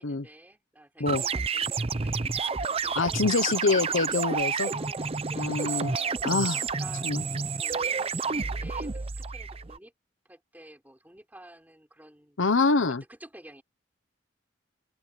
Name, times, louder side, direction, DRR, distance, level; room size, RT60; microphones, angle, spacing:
voice 1, 0.0-9.9 10.2-12.4 12.9-13.6, right 1 dB, 10° right, 4.0 m, -51 dB
sound 1, 1.1-9.8, right 5 dB, 30° right, 0.6 m, -30 dB
voice 2, 3.0-4.7 5.4-5.9 6.2-6.6 7.0-7.2 12.4-13.0, left 3 dB, 90° left, 1.0 m, -25 dB
head